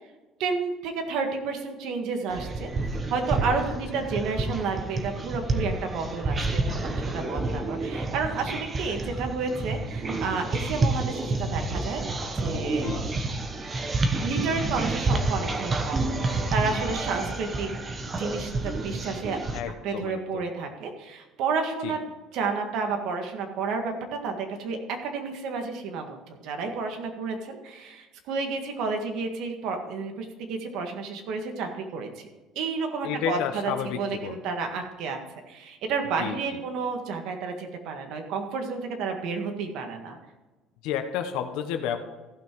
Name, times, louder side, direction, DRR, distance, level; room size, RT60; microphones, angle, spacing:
voice 1, 0.4-2.7 3.1-12.0 12.4-12.9 14.2-17.7 18.2-19.4 19.8-22.0 22.3-32.3 32.6-35.2 35.5-40.2, right 4 dB, 70° right, 4 dB, 1.8 m, -31 dB
sound 1, 2.3-19.6, right 2 dB, 25° right, 1.0 m, -29 dB
voice 2, 19.5-20.4 21.8-22.0 33.0-34.4 36.2-36.6 40.8-42.0, left 9 dB, 80° left, 6 dB, 1.0 m, -31 dB
15.0 x 6.0 x 4.7 m, 1.2 s
cardioid pair, 135°, 0 cm